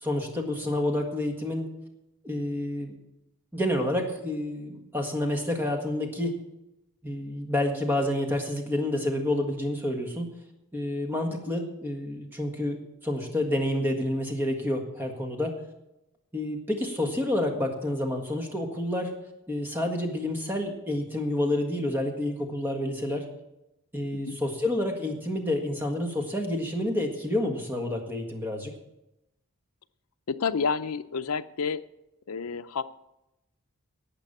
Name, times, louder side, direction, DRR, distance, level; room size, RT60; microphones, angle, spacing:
voice 1, 0.0-1.7 2.2-2.9 3.5-6.4 7.0-10.3 10.7-15.6 16.3-19.1 19.5-23.3 23.9-28.7, left 1 dB, 10° right, 2 dB, 1.7 m, -29 dB
voice 2, 30.3-31.8 32.3-32.8, left 5 dB, 75° left, 12 dB, 0.6 m, -29 dB
12.0 x 8.3 x 7.1 m, 0.90 s
head